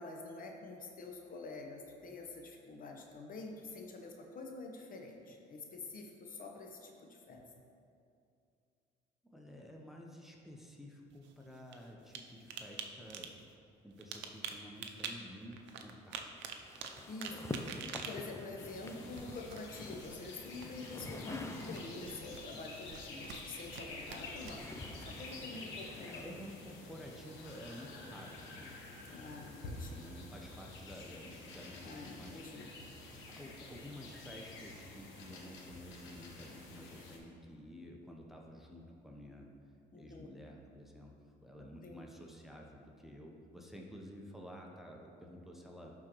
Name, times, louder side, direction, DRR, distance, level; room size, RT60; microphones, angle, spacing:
voice 1, 0.0-7.4 17.1-17.3 17.8-24.6 25.1-26.2 29.0-30.0 31.8-32.7 39.9-40.3 41.8-42.0, left 3 dB, 45° left, 2 dB, 0.9 m, -47 dB
voice 2, 9.2-13.4 13.8-16.5 17.3-18.0 18.8-19.1 26.1-28.7 29.8-32.4 33.3-39.5 40.0-41.2 41.4-45.9, equal, ahead, -1 dB, 0.8 m, -51 dB
sound 1, 11.1-12.2 12.5-12.8 13.1-13.4 13.9-15.1 15.5-19.7 20.0-20.2 20.5-21.2 21.5-22.4 22.8-23.8 24.1-25.4, right 8 dB, 75° right, 0.6 m, -45 dB
sound 2, 16.6-22.2 23.3-26.8, left 2 dB, 15° left, 0.4 m, -47 dB
sound 3, 18.6-37.2, left 2 dB, 80° left, 1.1 m, -49 dB
11.0 x 3.8 x 3.0 m, 2.5 s
supercardioid pair, 75°, 19 cm